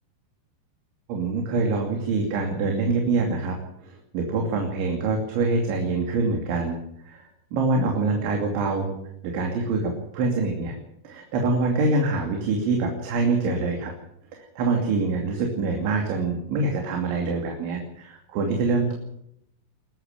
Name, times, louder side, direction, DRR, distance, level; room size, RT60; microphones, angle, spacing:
voice 1, 1.1-3.6 3.8-6.8 7.0-8.9 9.2-10.7 11.0-13.9 14.3-18.9, right 3 dB, 70° right, 2 dB, 5.0 m, -25 dB
22.0 x 14.5 x 8.9 m, 0.76 s
omnidirectional pair, 5.7 m